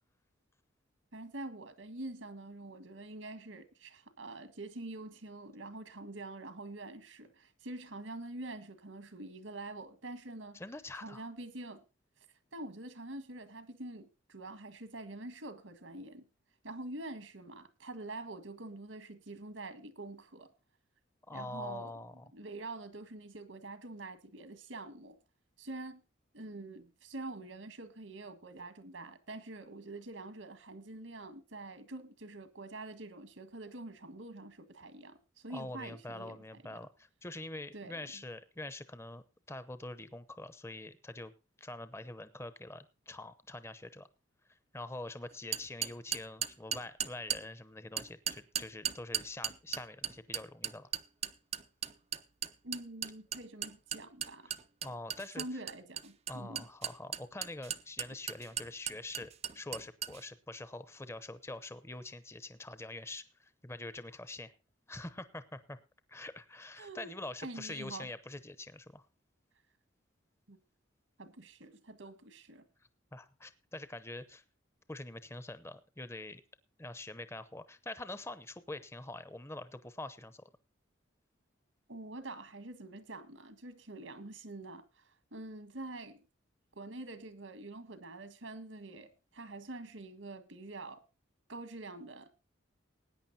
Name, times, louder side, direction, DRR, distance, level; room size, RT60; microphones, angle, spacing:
voice 1, 1.1-10.6 11.0-11.8 12.5-16.3 16.6-20.5 21.3-22.0 22.3-25.2 25.6-26.0 26.3-36.8 37.7-38.2 52.6-54.5 55.4-56.7 66.8-67.1 67.4-68.1 70.5-70.6 71.2-72.6 81.9-86.2 86.8-91.0 91.5-92.4, right 2 dB, 80° right, 1.7 m, -46 dB
voice 2, 10.5-11.3 21.3-22.2 35.5-41.3 41.6-44.1 44.5-50.9 54.8-55.4 56.3-64.5 64.9-65.8 66.1-69.0 73.1-74.4 74.9-76.4 76.8-80.5, left 2 dB, 15° left, 0.8 m, -45 dB
sound 1, 45.5-47.4 48.0-60.2, right 9 dB, 30° right, 0.5 m, -36 dB
19.5 x 9.6 x 2.8 m
head